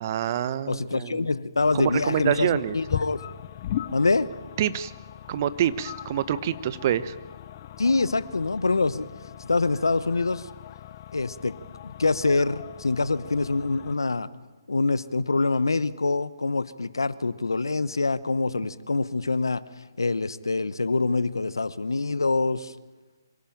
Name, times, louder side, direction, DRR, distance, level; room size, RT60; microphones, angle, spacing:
voice 1, 0.0-1.3 1.7-2.8 4.6-4.9 5.3-7.1, right 10 dB, 40° right, 15 dB, 1.0 m, -26 dB
voice 2, 0.7-3.2 3.9-4.3 7.8-9.1 9.4-10.5 11.1-11.6 11.8-14.3 14.7-19.6 20.0-22.7, left 3 dB, 85° left, 16 dB, 0.9 m, -25 dB
sound 1, 1.6-13.9, left 12 dB, 40° left, 0.8 m, -39 dB
25.0 x 17.5 x 8.9 m, 1.3 s
figure-of-eight pair, 140°, 2 cm